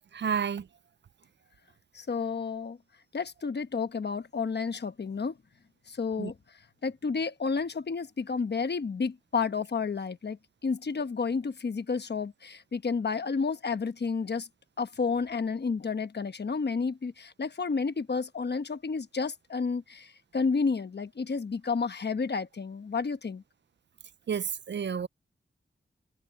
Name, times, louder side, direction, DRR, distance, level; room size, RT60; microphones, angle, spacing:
voice 1, 0.1-0.7 6.2-6.3 24.3-25.1, right 7 dB, 65° right, 0.4 m, -30 dB
voice 2, 1.9-2.8 3.1-5.3 5.9-6.3 6.8-10.4 10.6-14.5 14.8-23.4, left 5 dB, 60° left, 1.1 m, -31 dB
wide cardioid pair, 85°, 20 cm